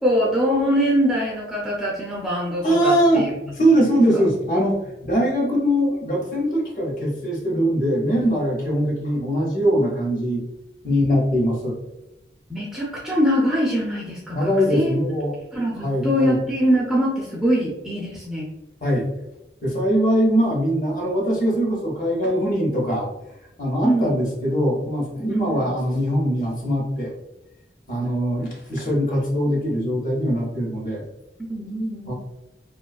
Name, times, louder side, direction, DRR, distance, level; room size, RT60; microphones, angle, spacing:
voice 1, 0.0-3.3 4.1-4.2 12.5-15.0 15.5-18.5 23.8-24.1 25.3-25.7 31.5-32.1, equal, 5° right, -5 dB, 0.4 m, -23 dB
voice 2, 2.6-3.3 3.5-10.4 10.8-11.8 14.3-15.3 15.8-16.4 18.8-19.1 19.6-23.1 23.6-27.1 27.9-31.0 32.1-32.2, equal, 45° left, -3 dB, 0.8 m, -21 dB
2.5 x 2.3 x 2.2 m, 0.91 s
head